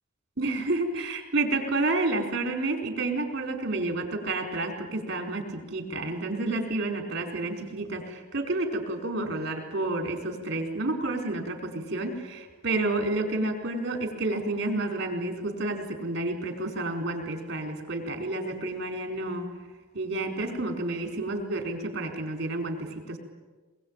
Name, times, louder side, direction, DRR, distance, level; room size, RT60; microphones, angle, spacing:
voice 1, 0.4-19.5 19.9-23.2, right 2 dB, 50° right, 4 dB, 4.7 m, -30 dB
23.0 x 23.0 x 9.0 m, 1.3 s
head